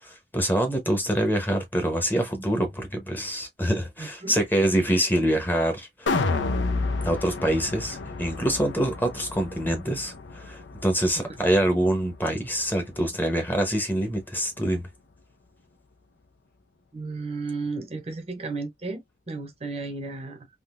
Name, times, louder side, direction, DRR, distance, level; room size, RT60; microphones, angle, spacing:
voice 1, 0.0-6.2 7.0-14.9, right 1 dB, 10° left, 0.8 m, -25 dB
voice 2, 4.0-4.3 11.2-11.4 16.9-20.5, right 3 dB, 35° right, 0.6 m, -34 dB
sound 1, 6.1-12.3 12.7-12.8, left 3 dB, 90° left, 0.6 m, -31 dB
3.6 x 2.5 x 2.4 m
head